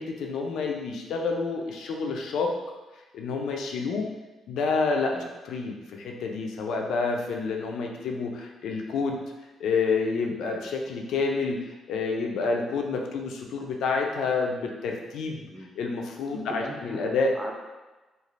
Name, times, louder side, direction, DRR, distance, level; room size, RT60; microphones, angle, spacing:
voice 1, 0.0-2.6 3.1-4.1 4.5-5.2 5.4-9.2 9.6-11.6 11.9-15.5 15.8-17.4, left 4 dB, 75° left, 2 dB, 0.4 m, -28 dB
voice 2, 16.3-17.5, equal, 10° right, 1 dB, 0.5 m, -39 dB
3.2 x 2.4 x 2.4 m, 1.1 s
cardioid pair, 90°, 0 cm